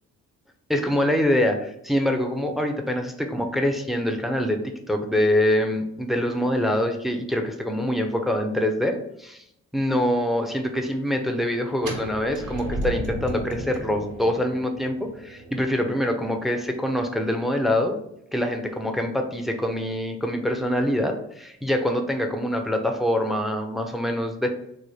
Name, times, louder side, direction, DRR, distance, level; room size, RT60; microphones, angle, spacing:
voice 1, 0.7-4.6 4.9-9.4 9.7-18.0 18.3-24.5, left 1 dB, ahead, 4 dB, 0.4 m, -25 dB
sound 1, 11.8-17.6, right 1 dB, 85° right, 1.4 m, -35 dB
3.1 x 2.1 x 4.0 m, 0.77 s
cardioid pair, 90°, 30 cm